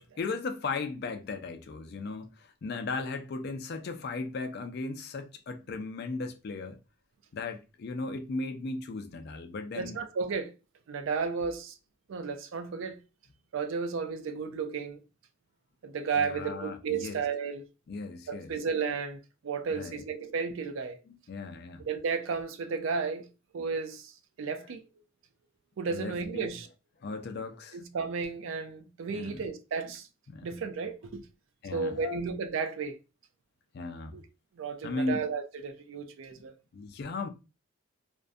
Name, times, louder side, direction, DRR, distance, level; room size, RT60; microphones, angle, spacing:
voice 1, 0.2-6.8 7.3-10.0 16.2-17.2 17.9-18.5 19.7-20.0 21.1-21.8 25.9-26.6 27.0-27.8 29.1-29.4 30.3-30.5 31.6-32.2 33.7-34.2 34.8-35.2 36.7-37.3, left 3 dB, 45° left, 0.3 m, -36 dB
voice 2, 9.7-10.5 10.9-11.8 12.1-13.0 13.5-15.0 15.8-17.6 18.3-21.0 21.8-23.3 23.5-24.1 24.4-24.8 25.8-26.7 27.7-30.1 30.4-31.2 31.7-33.0 34.1-34.2 34.6-36.5, right 5 dB, 65° right, 0.4 m, -33 dB
2.4 x 2.1 x 2.5 m
head